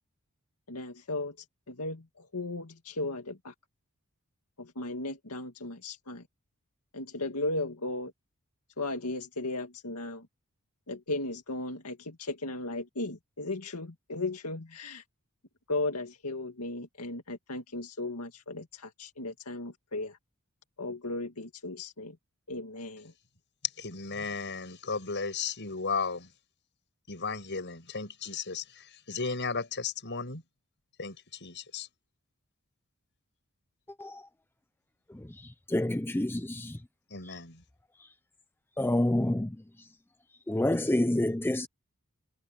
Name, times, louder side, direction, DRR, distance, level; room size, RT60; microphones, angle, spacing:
voice 1, 0.7-1.4 1.7-3.5 4.6-6.2 6.9-8.1 8.8-10.3 10.9-15.0 15.7-20.2 20.8-22.2 22.5-23.1, left 2 dB, 85° left, 2.1 m, -36 dB
voice 2, 23.8-26.3 27.1-30.4 31.0-31.2 31.4-31.9 37.1-37.6, left 4 dB, 55° left, 7.4 m, -35 dB
voice 3, 35.7-36.7 38.8-39.5 40.5-41.7, left 1 dB, 10° left, 0.6 m, -27 dB
head